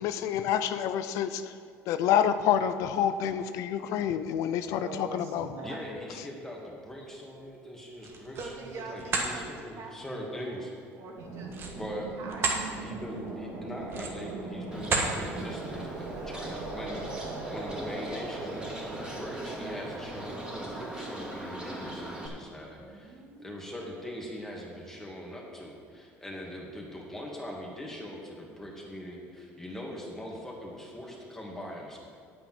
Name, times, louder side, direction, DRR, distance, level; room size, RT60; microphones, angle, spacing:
voice 1, 0.0-1.6 1.9-5.5 6.2-6.3, left 9 dB, 70° left, 11 dB, 0.6 m, -28 dB
voice 2, 4.7-5.8 8.4-10.7 11.0-11.6 12.2-12.6 22.4-23.5, right 3 dB, 65° right, 0 dB, 2.1 m, -44 dB
voice 3, 5.6-10.7 11.7-12.1 12.8-32.0, equal, 5° left, -2 dB, 2.6 m, -41 dB
sound 1, 7.9-8.6 9.0-9.3 11.5-12.6 13.1-13.3 13.8-14.3 14.8-15.2, right 4 dB, 45° right, 1.6 m, -31 dB
sound 2, 11.2-21.7, right 3 dB, 80° right, 2.2 m, -40 dB
Bird, 14.7-22.3, right 1 dB, 15° right, 2.6 m, -41 dB
8.9 x 8.9 x 6.1 m, 2.2 s
cardioid pair, 105°, 6 cm